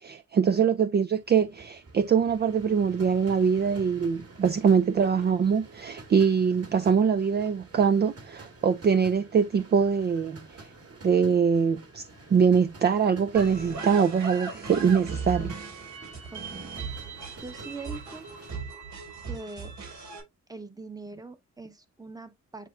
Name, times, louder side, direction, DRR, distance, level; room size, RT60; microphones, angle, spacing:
voice 1, 0.0-10.7 11.0-12.1 12.3-15.6, right 6 dB, 35° right, 0.4 m, -23 dB
sound 1, 1.2-18.6, right 2 dB, 55° right, 2.7 m, -49 dB
sound 2, 13.3-20.2, right 4 dB, 80° right, 4.9 m, -38 dB
voice 2, 16.3-16.7 17.4-18.3 19.2-19.7 20.5-22.7, right 3 dB, 15° right, 1.0 m, -42 dB
9.2 x 4.2 x 2.5 m
wide cardioid pair, 125°, 29 cm